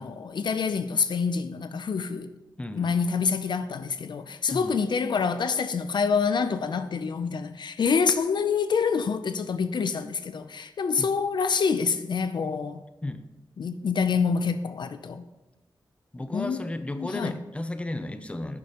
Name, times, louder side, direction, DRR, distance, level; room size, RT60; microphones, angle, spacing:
voice 1, 0.0-2.3 2.8-12.8 13.6-15.3 16.3-16.7 17.0-17.4, left 5 dB, 65° left, 0.5 m, -26 dB
voice 2, 2.6-2.9 4.5-4.8 11.0-11.1 13.0-13.3 16.1-18.6, left 1 dB, 15° left, 0.5 m, -34 dB
11.0 x 9.6 x 3.0 m
wide cardioid pair, 160°, 8 cm